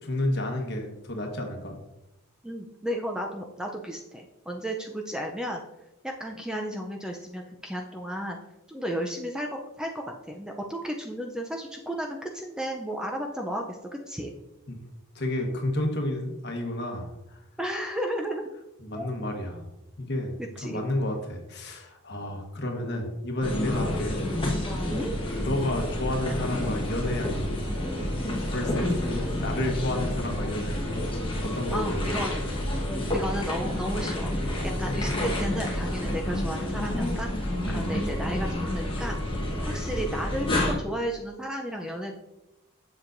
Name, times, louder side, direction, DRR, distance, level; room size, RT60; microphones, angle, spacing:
voice 1, 0.0-1.8 14.7-14.8 15.1-17.4 18.8-19.6 20.0-20.3 20.6-24.2 25.1-27.5 28.4-28.9 29.4-30.9 31.4-32.2 34.9-35.0 37.6-38.0, left 1 dB, 50° left, 3 dB, 1.2 m, -31 dB
voice 2, 2.4-5.6 6.0-8.4 8.7-14.3 17.6-18.5 19.0-19.1 20.4-20.8 24.9-25.1 31.7-32.3 33.1-34.3 34.6-37.3 37.7-39.2 39.6-42.1, equal, 5° right, 1 dB, 0.4 m, -33 dB
sound 1, 23.4-40.7, left 1 dB, 25° left, 1.2 m, -29 dB
7.4 x 7.3 x 2.6 m, 0.94 s
head